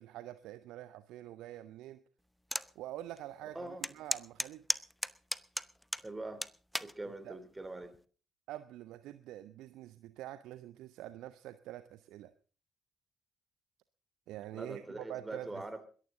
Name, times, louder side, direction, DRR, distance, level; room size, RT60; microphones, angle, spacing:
voice 1, 0.0-2.0 2.7-4.9 7.2-7.4 8.5-12.3 14.3-15.6, right 14 dB, 65° right, 14 dB, 0.7 m, -46 dB
toggle switches, 2.5-2.7 3.2-3.3 3.8-6.1 6.4-6.9 7.6-8.0, equal, 5° left, 0.8 m, -34 dB
voice 2, 3.5-3.8 6.0-6.4 6.8-7.9 14.5-15.9, right 2 dB, 15° right, 10 dB, 3.3 m, -43 dB
21.5 x 14.0 x 3.9 m, 0.39 s
figure-of-eight pair, 45°, 0 cm